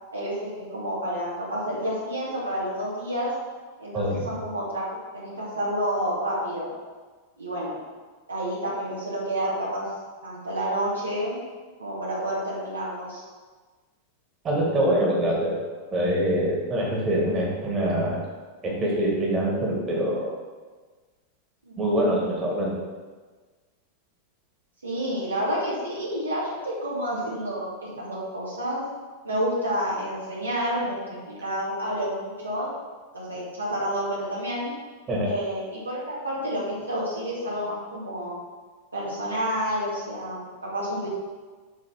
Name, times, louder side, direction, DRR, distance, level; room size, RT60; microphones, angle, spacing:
voice 1, 0.1-3.3 3.8-4.8 5.1-6.7 7.4-7.8 8.3-9.9 10.2-11.4 11.8-13.2 21.6-21.8 24.8-28.9 29.2-32.7 33.1-34.7 35.2-38.3 38.9-41.1, equal, 80° right, -6 dB, 2.3 m, -29 dB
voice 2, 14.4-15.6 15.9-18.2 18.6-20.3 21.8-22.8 35.1-35.3, right 1 dB, 25° right, -3 dB, 2.0 m, -24 dB
8.0 x 3.9 x 5.9 m, 1.4 s
figure-of-eight pair, 90°, 0 cm